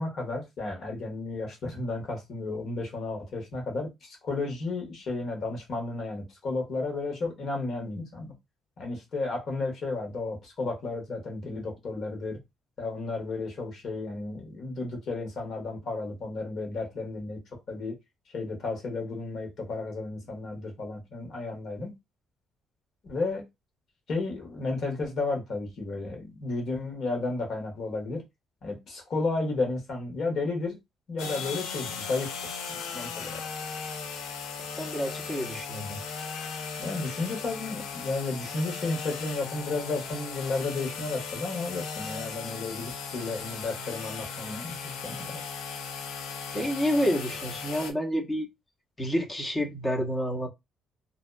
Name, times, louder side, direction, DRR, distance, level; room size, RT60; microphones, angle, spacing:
voice 1, 0.0-8.3 8.8-12.4 12.8-17.4 17.7-17.9 18.3-21.9 23.1-23.4 24.1-28.2 28.6-30.8 31.1-32.3 32.7-33.5 36.8-45.4, left 3 dB, 60° left, 1.3 m, -33 dB
sound 1, 31.2-47.9, left 5 dB, 80° left, 0.5 m, -37 dB
voice 2, 34.8-36.0 46.5-48.5 49.0-50.5, equal, 25° left, 1.0 m, -29 dB
2.7 x 2.2 x 2.3 m
supercardioid pair, 60°, 0 cm